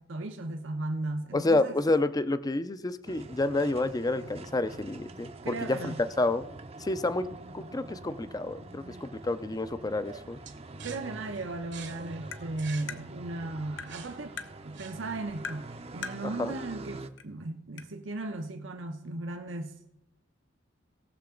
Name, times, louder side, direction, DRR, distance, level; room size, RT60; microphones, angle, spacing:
voice 1, 0.0-1.7 5.4-6.0 10.8-14.4 14.6-19.9, right 2 dB, 85° right, 1.0 m, -36 dB
voice 2, 1.3-6.4 6.8-10.4 16.4-16.5, left 2 dB, 20° left, 0.5 m, -29 dB
sound 1, 3.0-17.1, right 2 dB, 30° right, 0.6 m, -45 dB
sound 2, 10.4-15.3, right 7 dB, 65° right, 1.2 m, -48 dB
Tap, 12.3-12.4 12.9-13.0 13.8-13.9 14.4-14.5 15.4-15.6 16.0-16.2 17.2-17.3 17.8-17.9, left 6 dB, 70° left, 0.8 m, -38 dB
18.0 x 6.8 x 3.8 m
head